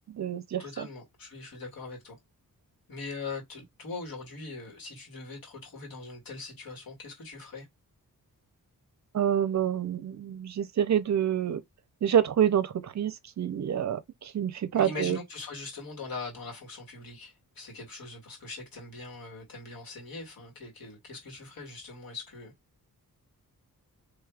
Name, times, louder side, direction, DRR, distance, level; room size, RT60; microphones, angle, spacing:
voice 1, 0.1-0.9 9.1-11.6 12.0-15.2, right 9 dB, 50° right, 0.5 m, -27 dB
voice 2, 0.6-2.2 2.9-7.7 14.7-22.5, left 3 dB, 75° left, 2.1 m, -41 dB
4.6 x 3.2 x 2.4 m
wide cardioid pair, 180°, 36 cm